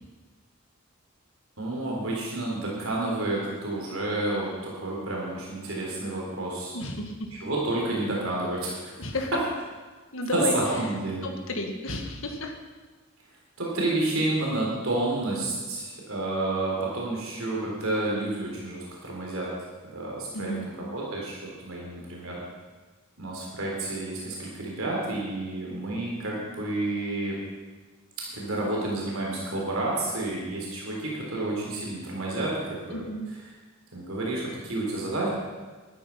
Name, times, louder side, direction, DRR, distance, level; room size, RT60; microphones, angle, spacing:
voice 1, 1.6-6.8 7.3-8.9 10.3-11.3 13.6-19.5 19.9-22.4 23.2-27.4 28.3-33.0 33.9-35.3, right 2 dB, 80° right, -3 dB, 3.8 m, -30 dB
voice 2, 6.7-7.3 9.0-9.3 10.1-10.9 11.2-12.5 20.3-20.7 32.9-33.3, left 1 dB, 70° left, 3 dB, 1.9 m, -32 dB
13.0 x 12.0 x 5.7 m, 1.3 s
head